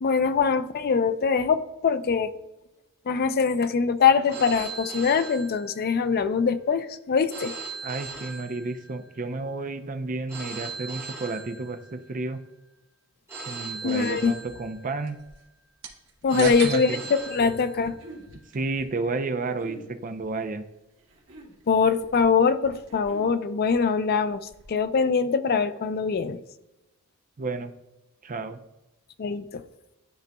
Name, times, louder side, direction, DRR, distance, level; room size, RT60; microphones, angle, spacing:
voice 1, 0.0-2.3 3.1-7.5 13.8-14.3 16.2-16.9 17.3-18.0 21.7-26.4 29.2-29.6, left 5 dB, 45° left, 12 dB, 0.4 m, -23 dB
Telephone, 4.3-6.2 7.3-9.2 10.3-12.2 13.3-15.2 16.3-18.2, right 4 dB, 10° right, 1.5 m, -39 dB
voice 2, 7.8-12.4 13.5-15.2 16.3-17.0 18.5-20.6 27.4-27.7 28.2-28.6, right 3 dB, 40° right, 8 dB, 0.5 m, -31 dB
sound 1, 14.2-24.8, right 6 dB, 60° right, 1.3 m, -46 dB
sound 2, 16.8-17.1 17.8-18.3 19.4-19.9 21.0-21.6 22.7-23.4, right 2 dB, 75° right, 2.1 m, -45 dB
12.0 x 3.9 x 2.3 m, 0.97 s
head